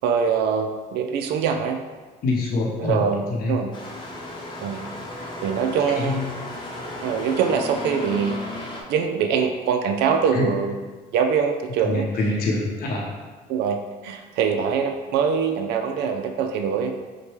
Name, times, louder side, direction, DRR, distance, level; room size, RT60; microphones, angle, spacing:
voice 1, 0.0-1.8 2.8-3.7 4.6-4.8 5.4-6.2 7.0-8.4 8.9-10.8 11.1-12.0 13.5-13.8 14.0-16.9, right 6 dB, 80° right, 5 dB, 0.4 m, -23 dB
voice 2, 2.2-3.6 6.0-6.2 10.3-10.5 11.8-13.1, left 2 dB, 60° left, -2 dB, 0.8 m, -25 dB
sound 1, 3.7-8.8, left 1 dB, 25° left, 0.8 m, -34 dB
6.2 x 2.2 x 3.1 m, 1.3 s
cardioid pair, 110°, 17 cm